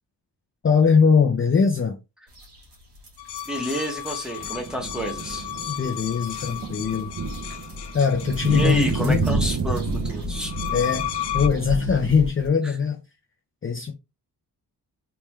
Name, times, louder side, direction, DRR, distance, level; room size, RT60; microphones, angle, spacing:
voice 1, 0.6-2.0 5.7-7.1 7.9-9.3 10.7-11.1 11.3-13.0 13.6-13.9, left 6 dB, 30° left, 0.5 m, -21 dB
sound 1, 2.3-12.5, left 3 dB, 80° right, 1.6 m, -38 dB
sound 2, 3.2-9.0 10.3-11.5, left 12 dB, 85° left, 0.5 m, -34 dB
voice 2, 3.5-5.5 8.5-10.5 12.6-12.8, right 1 dB, ahead, 0.9 m, -29 dB
sound 3, 4.4-12.3, right 4 dB, 45° right, 0.7 m, -30 dB
3.5 x 3.3 x 3.1 m
wide cardioid pair, 165°, 39 cm